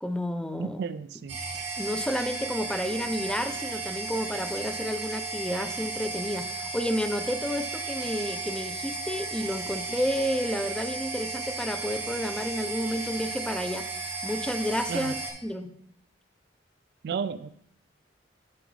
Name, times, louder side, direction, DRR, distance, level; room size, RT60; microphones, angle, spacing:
voice 1, 0.0-0.8 1.8-13.8 14.2-15.1 15.4-15.7, equal, 5° left, 9 dB, 0.4 m, -31 dB
voice 2, 0.6-1.4 14.9-15.1 17.0-17.5, right 6 dB, 60° right, 14 dB, 0.3 m, -33 dB
sound 1, 1.3-15.3, right 3 dB, 75° right, 2.1 m, -34 dB
11.5 x 4.9 x 3.1 m, 0.73 s
head